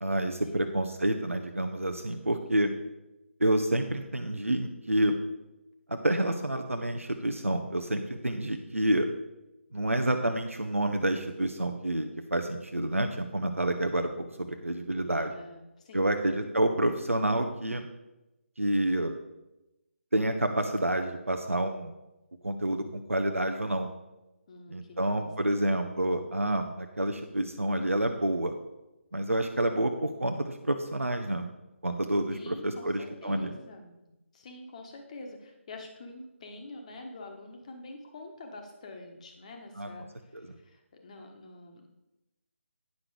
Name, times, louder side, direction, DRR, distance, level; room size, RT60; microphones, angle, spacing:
voice 1, 0.0-2.7 3.4-5.1 5.9-9.1 9.7-15.3 15.9-17.9 18.6-19.1 20.1-21.9 22.4-23.9 24.7-28.6 29.1-31.5 31.8-33.5 39.8-39.9 40.3-40.4, right 1 dB, 80° right, 5 dB, 0.8 m, -28 dB
voice 2, 2.1-2.6 15.1-16.2 24.5-25.8 32.3-40.0 40.3-41.9, left 2 dB, 30° left, 3 dB, 1.3 m, -47 dB
9.7 x 6.2 x 4.9 m, 0.97 s
figure-of-eight pair, 150°, 7 cm